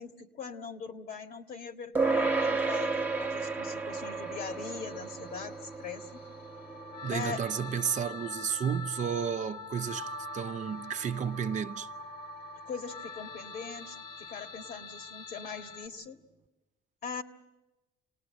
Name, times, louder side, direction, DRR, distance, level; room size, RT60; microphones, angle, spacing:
voice 1, 0.0-6.2 7.1-7.4 12.7-16.2 17.0-17.2, left 5 dB, 65° left, 1.9 m, -41 dB
sound 1, 1.9-11.6, right 4 dB, 10° right, 1.0 m, -34 dB
sound 2, 3.9-15.9, left 2 dB, 80° left, 3.4 m, -44 dB
voice 2, 7.0-11.9, right 8 dB, 45° right, 0.8 m, -32 dB
27.5 x 19.0 x 7.8 m
cardioid pair, 110°, 17 cm